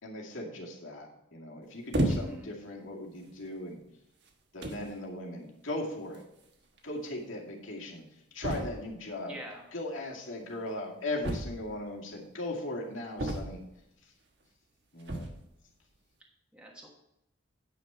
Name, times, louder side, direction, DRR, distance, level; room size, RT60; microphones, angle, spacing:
voice 1, 0.0-3.8 4.5-6.2 6.8-9.4 9.7-13.6 14.0-14.1 14.9-15.3, left 1 dB, 85° left, -2 dB, 2.3 m, -38 dB
sound 1, 1.9-2.5 3.3-3.5 4.3-4.4 4.6-4.9 6.1-6.2 6.5-6.6 6.8-6.9 8.4-9.0 11.2-11.9 13.2-13.8 15.0-15.5, right 1 dB, 55° right, 1.3 m, -32 dB
voice 2, 2.1-2.5 9.3-9.6 16.2-16.9, right 1 dB, 5° right, -2 dB, 1.3 m, -46 dB
9.5 x 6.3 x 4.4 m, 0.85 s
head